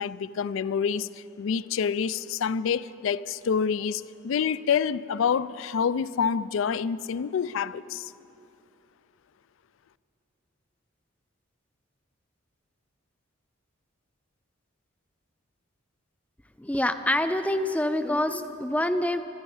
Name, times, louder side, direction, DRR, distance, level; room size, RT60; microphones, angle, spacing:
voice 1, 0.0-8.1, left 7 dB, 75° left, 18 dB, 0.4 m, -27 dB
voice 2, 16.6-19.2, left 1 dB, 5° left, 10 dB, 0.5 m, -26 dB
18.0 x 13.0 x 5.5 m, 2.9 s
head